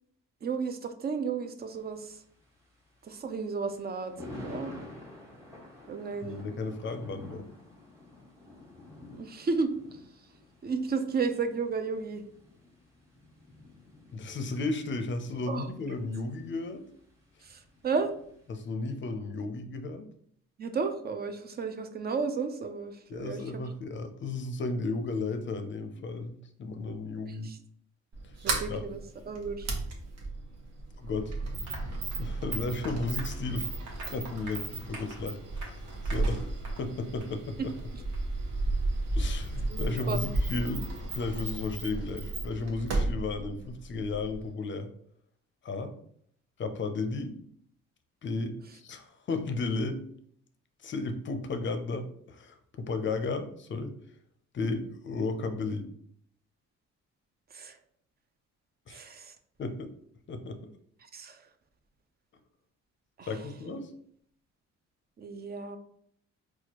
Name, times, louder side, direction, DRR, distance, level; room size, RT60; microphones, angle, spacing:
voice 1, 0.4-2.2 3.0-4.7 5.9-6.5 9.1-9.7 10.6-12.2 15.5-15.7 17.4-18.1 20.6-23.6 27.3-27.6 28.4-29.7 39.7-39.8 40.1-40.3 57.5-57.8 58.9-59.3 61.0-61.5 63.2-63.3 65.2-65.8, right 5 dB, 35° right, 8 dB, 0.5 m, -33 dB
Thunder, 1.6-18.7, left 2 dB, 10° right, 1.4 m, -50 dB
voice 2, 6.2-7.5 14.1-16.8 18.5-20.1 23.1-27.5 28.7-28.8 31.0-31.3 32.2-33.8 34.1-36.5 36.8-37.6 39.1-40.9 41.1-44.9 45.6-45.9 46.6-47.4 48.2-50.0 50.8-53.9 54.5-55.9 58.9-59.1 59.6-59.9 60.3-60.6 63.3-63.9, left 3 dB, 40° left, 8 dB, 0.5 m, -34 dB
Sliding door, 28.1-44.5, right 2 dB, 55° right, 0.9 m, -34 dB
Applause, 31.7-36.9 37.2-37.3 37.7-37.8 38.1-38.2, right 2 dB, 75° right, 1.2 m, -47 dB
4.1 x 2.3 x 2.9 m, 0.65 s
cardioid pair, 90°, 30 cm